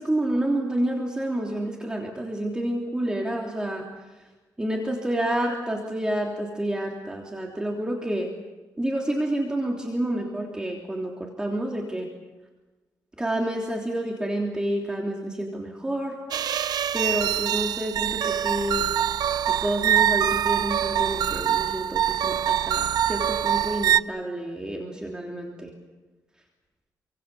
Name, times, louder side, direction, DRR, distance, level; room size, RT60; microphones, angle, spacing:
voice 1, 0.0-3.8 4.6-8.3 8.8-12.1 13.2-16.2 16.9-18.9 19.6-25.7, right 1 dB, 10° right, 0 dB, 3.3 m, -29 dB
sound 1, 16.3-24.0, right 10 dB, 80° right, 0.7 m, -24 dB
28.5 x 25.0 x 7.0 m, 1.2 s
wide cardioid pair, 125°, 7 cm